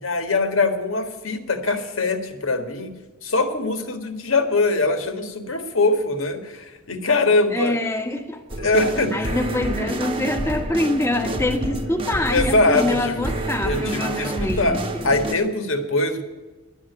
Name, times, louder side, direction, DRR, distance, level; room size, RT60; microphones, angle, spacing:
voice 1, 0.0-2.9 3.2-7.8 8.6-9.4 12.3-13.2 13.6-14.8 15.0-16.2, left 2 dB, 75° left, 7 dB, 1.7 m, -22 dB
voice 2, 7.5-8.4 9.1-15.1, left 1 dB, 15° left, 4 dB, 1.3 m, -25 dB
sound 1, 8.5-15.3, right 1 dB, 25° right, 1.0 m, -28 dB
12.0 x 8.9 x 9.5 m, 1.3 s
head